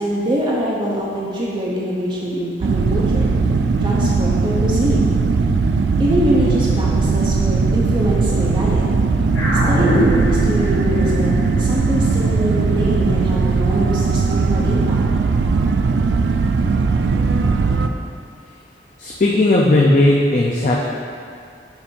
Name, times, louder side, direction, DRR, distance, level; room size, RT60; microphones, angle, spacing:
voice 1, 0.0-3.3 3.8-5.1 6.0-8.8 9.7-11.3 11.6-15.0, equal, 25° right, -5 dB, 0.6 m, -23 dB
sound 1, 2.6-17.9, right 4 dB, 70° right, 0.3 m, -18 dB
sound 2, 9.3-14.0, equal, 90° left, 1.5 m, -24 dB
voice 2, 19.0-20.7, left 2 dB, 45° left, -3 dB, 0.5 m, -15 dB
7.0 x 2.6 x 5.3 m, 2.4 s
head